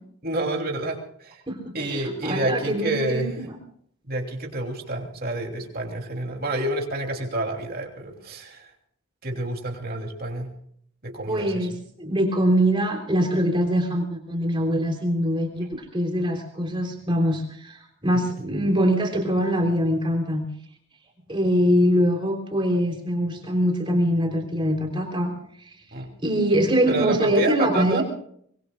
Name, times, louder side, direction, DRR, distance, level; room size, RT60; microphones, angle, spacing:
voice 1, 0.2-1.4 1.7-3.3 4.1-8.7 9.2-10.5 11.0-11.7 18.1-18.2 25.9-26.1 26.9-28.0, right 2 dB, 45° right, 2 dB, 3.1 m, -29 dB
voice 2, 1.5-3.3 11.3-11.7 12.0-20.4 21.3-25.3 25.6-25.8 26.2-28.0, equal, 25° right, 2 dB, 3.5 m, -23 dB
24.0 x 24.0 x 2.4 m, 0.64 s
head